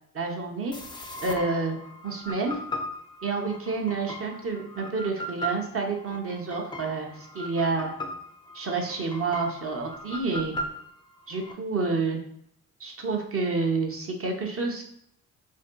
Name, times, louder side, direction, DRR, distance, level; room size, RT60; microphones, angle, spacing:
voice 1, 0.1-0.7 1.2-1.8 2.0-2.6 3.2-7.9 8.5-10.6 11.3-12.2 12.8-14.8, right 3 dB, 35° right, 2 dB, 0.8 m, -29 dB
sound 1, 0.7-11.5, equal, 15° left, 0.3 m, -38 dB
2.6 x 2.6 x 2.2 m, 0.69 s
supercardioid pair, 60°, 38 cm